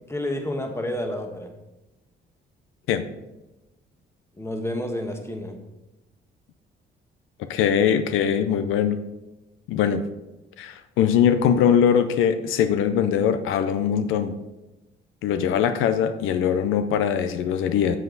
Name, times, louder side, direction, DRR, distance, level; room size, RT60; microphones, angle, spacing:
voice 1, 0.1-1.5 4.3-5.6, left 1 dB, 15° left, 4 dB, 1.3 m, -30 dB
voice 2, 7.5-9.0 9.7-10.0 10.6-14.4 15.2-18.0, left 8 dB, 90° left, 10 dB, 0.6 m, -21 dB
7.8 x 7.4 x 3.9 m, 0.99 s
cardioid pair, 90°, 20 cm